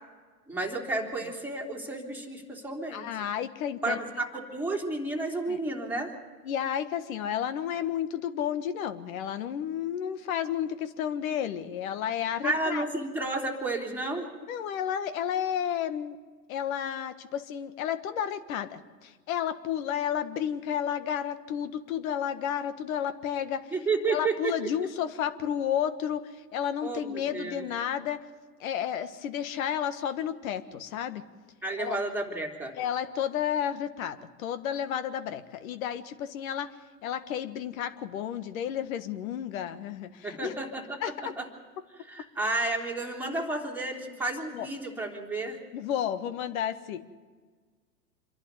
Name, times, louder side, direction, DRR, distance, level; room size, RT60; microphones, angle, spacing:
voice 1, 0.5-3.0 3.8-6.1 12.4-14.3 23.7-24.6 26.8-27.6 31.6-32.7 40.2-41.5 42.1-45.6, right 2 dB, 5° right, -1 dB, 3.3 m, -32 dB
voice 2, 2.9-4.0 5.5-5.6 6.4-12.8 14.5-16.2 16.5-23.6 24.1-28.2 28.6-31.2 31.8-32.0 32.8-36.7 37.0-40.5 41.0-41.1 44.5-44.7 45.7-47.1, left 9 dB, 60° left, 11 dB, 1.6 m, -32 dB
27.0 x 11.5 x 9.5 m, 1.5 s
hypercardioid pair, 110°, 48 cm